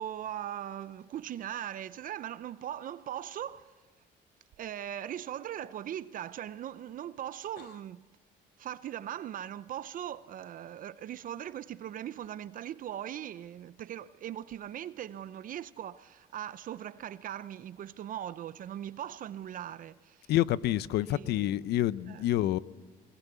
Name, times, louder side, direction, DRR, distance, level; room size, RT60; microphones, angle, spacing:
voice 1, 0.0-3.7 4.6-8.0 8.6-20.3 21.0-21.5 22.1-22.2, right 11 dB, 55° right, 0.7 m, -40 dB
voice 2, 20.3-22.6, left 14 dB, 75° left, 0.7 m, -28 dB
21.0 x 20.5 x 8.3 m
cardioid pair, 110°, 17 cm